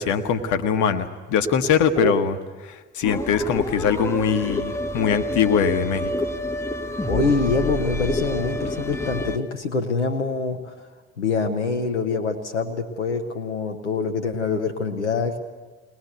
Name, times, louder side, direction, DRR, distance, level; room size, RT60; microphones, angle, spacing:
voice 1, 0.0-2.3 2.7-6.1, left 7 dB, 60° left, 7 dB, 1.3 m, -22 dB
sound 1, 3.0-9.4, left 1 dB, 10° left, 1.6 m, -28 dB
voice 2, 7.1-10.9 11.2-15.4, left 4 dB, 90° left, 5 dB, 0.9 m, -25 dB
21.5 x 19.5 x 8.3 m, 1.3 s
figure-of-eight pair, 50°, 34 cm